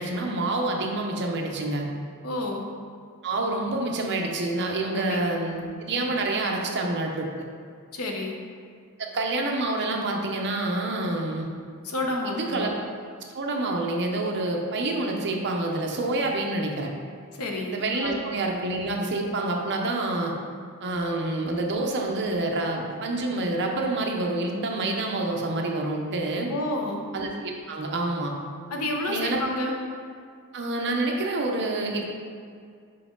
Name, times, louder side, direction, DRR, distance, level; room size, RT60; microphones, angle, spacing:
voice 1, 0.0-1.8 3.2-7.3 9.0-11.5 12.2-12.7 13.3-16.9 17.7-20.3 20.8-26.5 27.1-28.3 29.1-29.4 30.5-32.1, right 2 dB, 55° right, 1 dB, 0.8 m, -27 dB
voice 2, 2.2-2.6 4.9-5.3 7.9-8.4 11.8-12.7 17.4-18.2 26.5-27.0 28.7-29.8, left 1 dB, 75° left, 1 dB, 0.9 m, -30 dB
5.7 x 5.4 x 3.8 m, 2.2 s
head